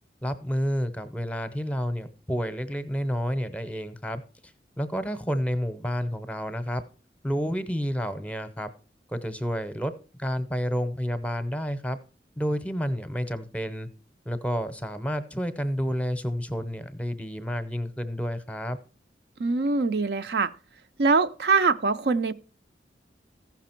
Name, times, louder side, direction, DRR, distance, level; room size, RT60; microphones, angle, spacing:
voice 1, 0.2-4.2 4.8-6.8 7.2-8.7 9.1-9.9 10.2-12.0 12.4-13.9 14.2-18.8, equal, 10° left, 0.7 m, -30 dB
voice 2, 19.4-20.5 21.0-22.3, right 4 dB, 65° right, 0.5 m, -23 dB
15.0 x 5.9 x 4.4 m
head